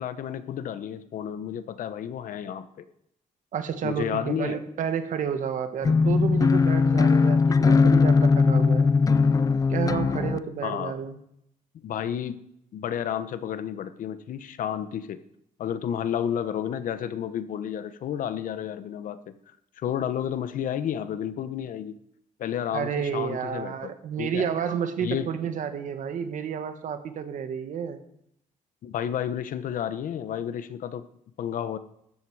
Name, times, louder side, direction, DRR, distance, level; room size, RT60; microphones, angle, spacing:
voice 1, 0.0-2.8 3.8-4.6 10.6-11.0 11.8-12.4 12.7-15.2 15.6-19.2 19.8-22.0 22.4-24.5 25.0-25.3 28.8-31.0 31.4-31.8, left 9 dB, 75° left, 12 dB, 1.1 m, -31 dB
voice 2, 3.5-8.9 9.7-11.2 22.7-28.0, right 7 dB, 65° right, 8 dB, 1.7 m, -30 dB
sound 1, 5.8-10.4, left 4 dB, 25° left, 0.4 m, -20 dB
17.0 x 13.5 x 4.9 m, 0.76 s
cardioid pair, 155°, 14 cm